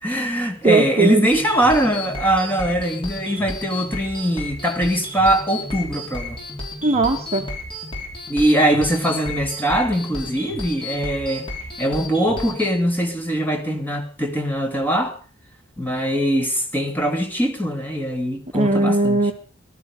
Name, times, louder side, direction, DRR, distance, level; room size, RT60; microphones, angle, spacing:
voice 1, 0.0-6.4 8.3-11.5 11.8-15.2 15.8-19.3, right 1 dB, 10° left, 2.7 m, -22 dB
voice 2, 0.6-1.3 6.8-7.5 18.5-19.3, right 3 dB, 30° right, 1.1 m, -18 dB
sound 1, 1.3-12.7, left 1 dB, 25° left, 6.0 m, -33 dB
19.0 x 13.0 x 5.4 m
head